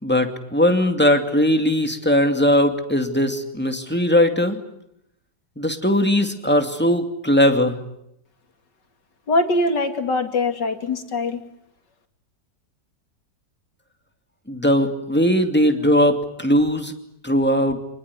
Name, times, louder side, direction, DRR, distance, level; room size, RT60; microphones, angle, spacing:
voice 1, 0.0-4.6 5.6-7.8 14.5-16.9 17.2-17.8, equal, 5° left, 5 dB, 2.5 m, -19 dB
voice 2, 9.3-11.4, left 2 dB, 70° left, 6 dB, 3.1 m, -22 dB
27.0 x 20.5 x 9.7 m, 0.79 s
omnidirectional pair, 1.9 m